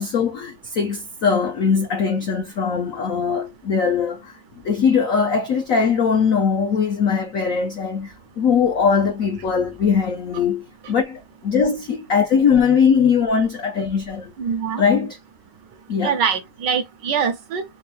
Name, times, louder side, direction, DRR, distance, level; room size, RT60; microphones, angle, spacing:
voice 1, 0.0-4.4 4.6-14.3 14.8-15.2 15.9-16.2, left 6 dB, 80° left, 0.7 m, -20 dB
voice 2, 14.4-14.8 16.0-17.6, right 7 dB, 75° right, 1.1 m, -23 dB
4.4 x 2.2 x 3.3 m
omnidirectional pair, 2.3 m